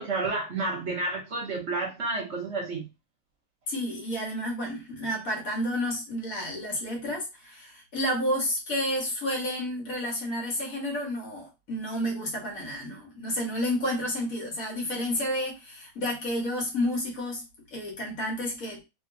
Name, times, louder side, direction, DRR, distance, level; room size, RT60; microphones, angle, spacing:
voice 1, 0.0-2.9, right 3 dB, 55° right, 1.0 m, -30 dB
voice 2, 3.7-17.5 17.7-18.8, equal, 65° left, 1.7 m, -30 dB
3.1 x 2.9 x 2.7 m
omnidirectional pair, 1.6 m